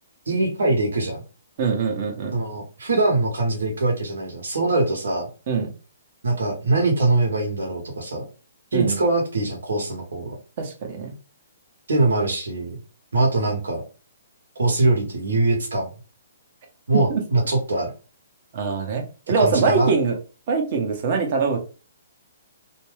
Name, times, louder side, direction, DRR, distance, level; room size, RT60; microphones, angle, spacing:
voice 1, 0.3-1.2 2.3-5.3 6.2-8.2 8.7-10.3 11.9-12.8 13.1-13.8 14.6-15.9 16.9-17.9 19.4-19.9, right 2 dB, 85° right, 0 dB, 1.1 m, -22 dB
voice 2, 1.6-2.4 5.5-5.7 8.7-9.0 10.6-11.1 16.9-17.2 18.5-20.1 20.5-21.6, right 5 dB, 45° right, 3 dB, 0.9 m, -23 dB
2.6 x 2.2 x 3.2 m, 0.35 s
hypercardioid pair, 145°, 0 cm